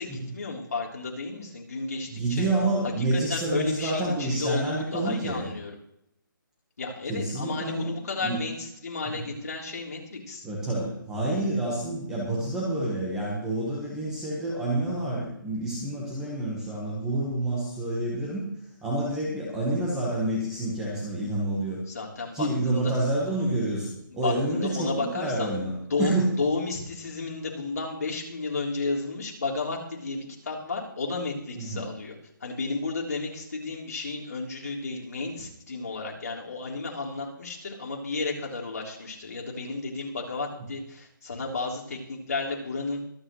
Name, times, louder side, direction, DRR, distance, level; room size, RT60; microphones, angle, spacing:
voice 1, 0.0-2.5 3.1-5.7 6.8-10.5 21.9-22.9 24.1-25.5 25.9-32.2 32.4-43.0, left 3 dB, 45° left, -2 dB, 3.6 m, -32 dB
voice 2, 2.1-5.5 7.1-7.9 8.2-8.4 9.2-9.3 10.4-18.5 18.8-21.8 22.3-26.3 31.6-31.8, right 2 dB, 5° right, -5 dB, 1.3 m, -28 dB
24.5 x 8.6 x 3.2 m, 0.76 s
hypercardioid pair, 180°, 12 cm